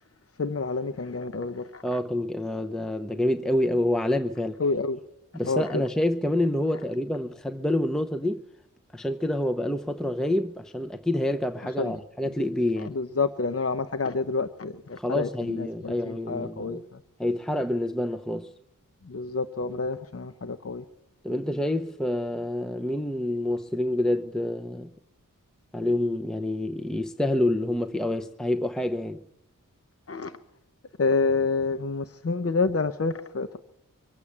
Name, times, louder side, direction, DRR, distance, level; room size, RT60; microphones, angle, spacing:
voice 1, 0.4-2.0 4.6-5.0 5.4-5.9 6.7-6.9 11.6-11.9 12.2-12.4 12.8-17.0 19.0-20.8 30.1-30.4 31.0-33.6, left 4 dB, 45° left, 0.8 m, -28 dB
voice 2, 1.8-4.6 5.3-8.4 8.9-12.9 15.0-16.8 17.2-18.5 21.2-24.9 25.7-29.2, left 1 dB, ahead, 0.7 m, -27 dB
24.5 x 8.4 x 7.2 m
wide cardioid pair, 65°, 33 cm